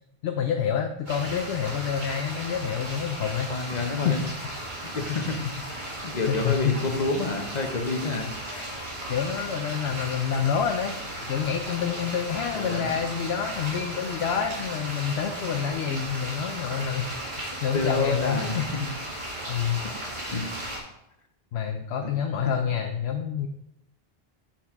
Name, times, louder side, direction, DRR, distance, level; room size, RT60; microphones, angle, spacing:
voice 1, 0.2-4.2 5.1-5.2 6.3-7.0 9.1-11.0 11.3-18.9 19.5-19.8 21.5-23.5, left 7 dB, 90° left, 5 dB, 0.8 m, -28 dB
sound 1, 1.1-20.8, right 1 dB, 50° right, 1.5 m, -36 dB
voice 2, 3.5-4.2 4.8-5.4 5.7-8.3 12.5-12.9 17.7-18.6 20.3-20.5 22.0-22.1 22.6-22.7, left 3 dB, 45° left, 4 dB, 0.9 m, -29 dB
7.1 x 5.8 x 3.5 m, 0.83 s
omnidirectional pair, 1.0 m